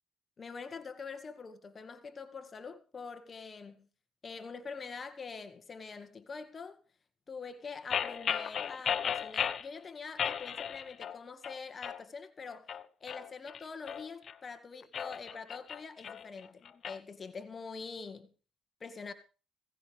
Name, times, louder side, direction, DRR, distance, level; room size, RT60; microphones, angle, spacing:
voice 1, 0.4-3.9 4.2-6.8 7.3-12.7 13.0-18.3 18.8-19.1, left 5 dB, 40° left, 2.0 m, -45 dB
sound 1, 7.9-9.7 10.2-11.2 11.4-12.0 12.5-14.3 14.8-17.0, left 8 dB, 55° left, 1.3 m, -35 dB
17.5 x 16.0 x 3.5 m
cardioid pair, 90°, 0 cm